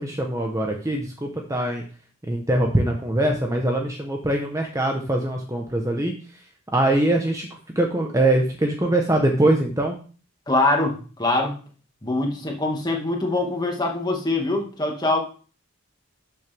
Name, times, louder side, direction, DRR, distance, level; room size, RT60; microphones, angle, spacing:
voice 1, 0.0-1.8 2.3-6.1 6.7-7.5 7.7-10.0, right 1 dB, 15° right, 2 dB, 1.0 m, -22 dB
voice 2, 10.5-11.5 12.0-15.2, left 2 dB, 20° left, 1 dB, 1.9 m, -23 dB
12.0 x 6.8 x 3.5 m, 0.39 s
head